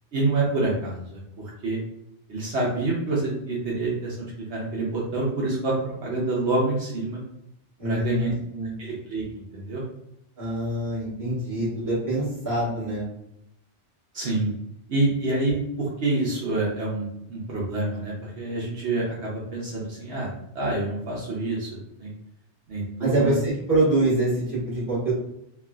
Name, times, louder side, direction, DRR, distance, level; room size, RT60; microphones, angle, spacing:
voice 1, 0.1-1.8 2.3-5.7 6.0-7.2 7.8-8.3 8.8-9.2 9.5-9.8 14.1-14.5 14.9-20.3 20.5-22.1 22.7-23.3, right 2 dB, 70° right, -5 dB, 1.0 m, -27 dB
voice 2, 7.8-8.7 10.4-13.0 23.0-25.1, right 2 dB, 15° right, -9 dB, 1.4 m, -25 dB
3.3 x 2.4 x 2.2 m, 0.79 s
omnidirectional pair, 1.2 m